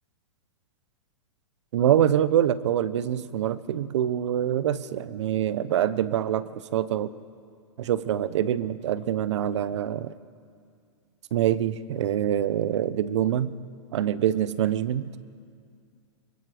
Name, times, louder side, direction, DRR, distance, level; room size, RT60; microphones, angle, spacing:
voice 1, 1.7-7.1 7.8-10.1 11.3-13.5 13.9-15.1, right 10 dB, 70° right, 16 dB, 0.9 m, -25 dB
24.0 x 21.5 x 5.0 m, 2.3 s
hypercardioid pair, 140°, 16 cm